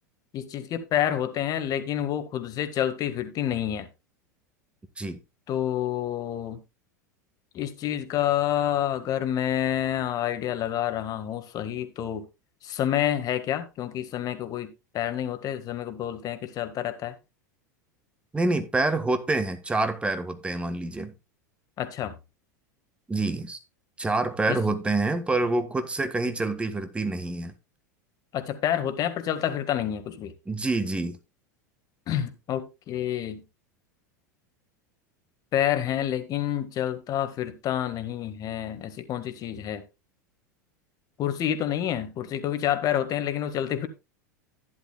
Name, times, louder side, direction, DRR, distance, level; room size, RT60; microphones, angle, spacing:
voice 1, 0.3-3.9 5.5-6.6 7.5-12.2 12.6-17.1 21.8-22.1 24.5-24.6 28.3-30.3 32.1-33.4 35.5-39.8 41.2-43.9, left 11 dB, 40° left, 1.7 m, -28 dB
voice 2, 18.3-21.1 23.1-23.6 24.0-27.6 30.5-31.2, right 2 dB, 10° right, 1.5 m, -27 dB
12.0 x 10.5 x 2.3 m
hypercardioid pair, 90°, 10 cm